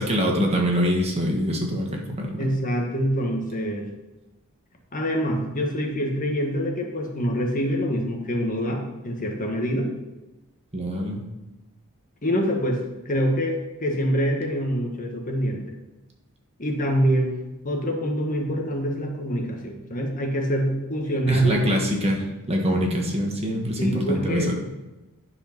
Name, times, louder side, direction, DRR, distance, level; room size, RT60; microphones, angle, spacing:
voice 1, 0.0-2.4 10.7-11.2 21.3-24.6, equal, 30° right, 0 dB, 1.5 m, -24 dB
voice 2, 2.4-3.9 4.9-9.9 12.2-12.8 13.0-15.7 16.6-17.3 17.6-21.7 23.8-24.5, equal, 35° left, 2 dB, 1.4 m, -25 dB
10.5 x 4.8 x 5.9 m, 1.1 s
head